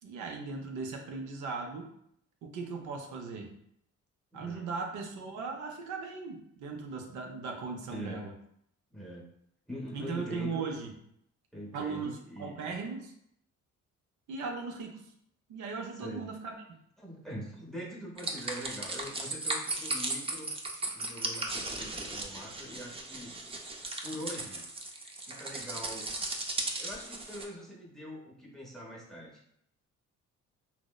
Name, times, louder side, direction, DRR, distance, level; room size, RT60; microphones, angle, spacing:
voice 1, 0.0-1.9 2.4-3.5 4.3-8.3 9.9-10.9 11.7-13.1 14.3-15.1 15.5-16.6, right 4 dB, 75° right, 2 dB, 0.5 m, -38 dB
voice 2, 4.3-4.7 7.9-8.2 8.9-9.3 9.7-10.7 11.5-12.7 16.0-16.2 17.0-20.5 20.9-23.3 24.0-24.6 25.2-26.1 26.8-29.4, equal, ahead, -3 dB, 0.7 m, -43 dB
sound 1, 18.2-27.4, right 2 dB, 20° right, 0.3 m, -36 dB
3.0 x 2.0 x 2.2 m, 0.73 s
cardioid pair, 90°, 30 cm